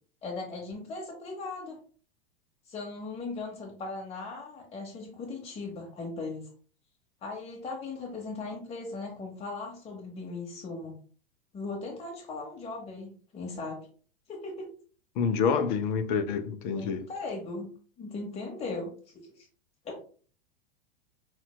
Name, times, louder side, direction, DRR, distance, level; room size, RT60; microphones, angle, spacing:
voice 1, 0.2-1.8 2.7-6.5 7.2-11.0 11.5-13.9 14.3-14.7 16.7-17.7 18.0-18.9 19.2-19.5 19.8-20.0, left 3 dB, 20° left, 0.8 m, -38 dB
voice 2, 15.2-17.1, left 6 dB, 45° left, 0.5 m, -27 dB
5.5 x 2.2 x 2.2 m
figure-of-eight pair, 95°, 34 cm